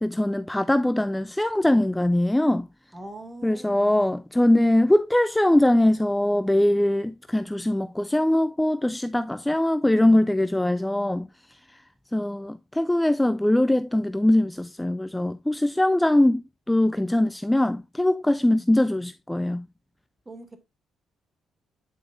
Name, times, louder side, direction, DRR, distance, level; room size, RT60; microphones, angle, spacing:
voice 1, 0.0-2.7 3.4-11.3 12.1-19.7, left 1 dB, 10° left, 0.3 m, -22 dB
voice 2, 2.9-4.0 20.3-20.6, right 2 dB, 20° right, 2.0 m, -41 dB
9.3 x 5.3 x 2.4 m
cardioid pair, 90°, 0 cm